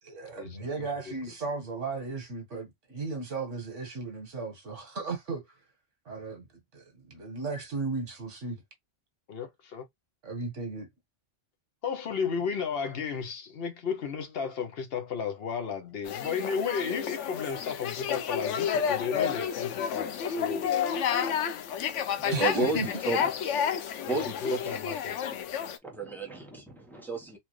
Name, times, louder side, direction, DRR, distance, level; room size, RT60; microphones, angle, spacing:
voice 1, 0.0-5.6 6.1-6.5 6.7-8.6 10.2-10.9 22.3-22.9, right 3 dB, 90° right, 1.7 m, -35 dB
voice 2, 9.3-9.9 11.8-20.7 22.2-22.9 23.7-25.2, left 6 dB, 60° left, 0.9 m, -34 dB
sound 1, 16.1-25.8, left 8 dB, 90° left, 1.0 m, -30 dB
voice 3, 22.4-23.2 24.1-24.6 25.8-27.4, right 3 dB, ahead, 0.9 m, -32 dB
4.2 x 2.4 x 3.1 m
omnidirectional pair, 1.2 m